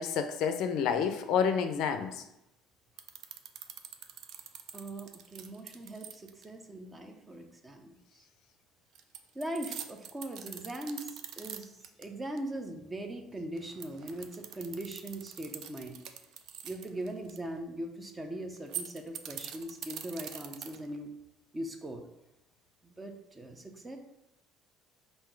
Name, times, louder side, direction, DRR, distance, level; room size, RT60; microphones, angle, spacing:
voice 1, 0.0-2.2, left 7 dB, 65° left, 8 dB, 0.4 m, -29 dB
sound 1, 3.0-6.4 8.9-12.0 12.4-12.5 13.6-17.4 18.6-21.0, right 9 dB, 60° right, 0.4 m, -44 dB
voice 2, 4.7-8.2 9.3-16.0 16.6-21.1 21.5-22.0 22.8-24.0, right 1 dB, 20° right, 5 dB, 0.7 m, -40 dB
3.6 x 2.6 x 4.5 m, 0.87 s
hypercardioid pair, 70°, 0 cm